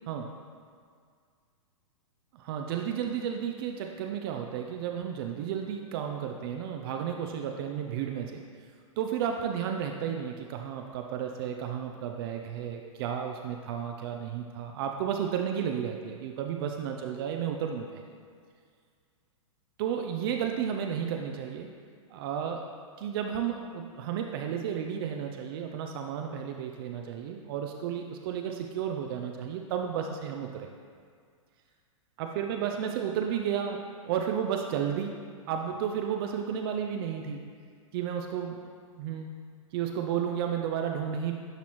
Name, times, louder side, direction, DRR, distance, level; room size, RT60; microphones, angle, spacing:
voice 1, 2.3-8.4 9.0-18.0 19.8-21.7 22.1-22.7 23.0-30.7 32.2-37.4 37.9-38.5 39.0-39.3 39.7-41.3, right 8 dB, 45° right, 3 dB, 0.5 m, -32 dB
10.5 x 4.0 x 3.0 m, 2.1 s
hypercardioid pair, 135°, 17 cm